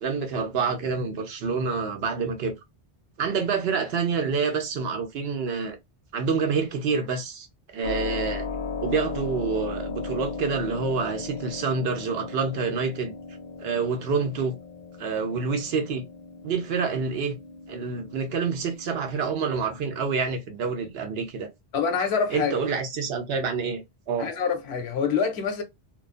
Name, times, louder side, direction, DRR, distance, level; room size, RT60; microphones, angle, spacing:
voice 1, 0.0-2.5 3.2-5.8 6.1-7.5 7.7-8.5 8.8-13.1 13.6-14.6 15.0-16.0 16.4-17.4 17.7-21.5 22.3-24.3, right 5 dB, 75° right, 0.9 m, -27 dB
Keyboard (musical), 7.8-20.3, left 4 dB, 60° left, 0.6 m, -37 dB
voice 2, 21.7-22.5 24.2-25.6, left 6 dB, 85° left, 0.9 m, -26 dB
2.3 x 2.3 x 2.4 m
omnidirectional pair, 1.1 m